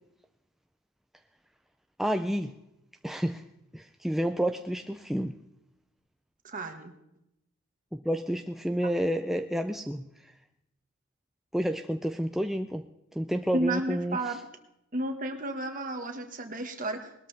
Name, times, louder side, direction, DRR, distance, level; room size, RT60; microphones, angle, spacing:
voice 1, 2.0-2.5 3.0-3.4 3.7-5.3 7.9-10.0 11.5-12.8 13.1-14.3, equal, ahead, 6 dB, 0.4 m, -30 dB
voice 2, 6.4-7.0 13.5-14.4 14.9-17.1, right 1 dB, 40° right, 5 dB, 1.6 m, -32 dB
20.0 x 13.0 x 3.4 m, 0.85 s
head